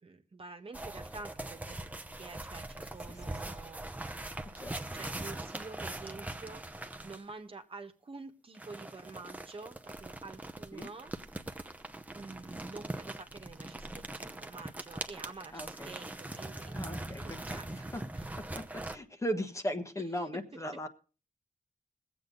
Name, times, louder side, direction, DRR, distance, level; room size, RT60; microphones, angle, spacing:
voice 1, 0.0-3.8 4.4-4.6 4.9-6.6 7.0-11.6 12.1-16.7 17.1-18.3, right 3 dB, 45° right, 6 dB, 1.4 m, -48 dB
sound 1, 0.7-7.3 8.5-19.0, right 1 dB, 10° right, 0.9 m, -42 dB
voice 2, 4.5-5.0 10.7-10.9 15.5-15.9 16.7-18.0 18.9-20.9, equal, 20° left, 6 dB, 1.3 m, -38 dB
21.5 x 8.2 x 3.9 m, 0.36 s
wide cardioid pair, 95°, 13 cm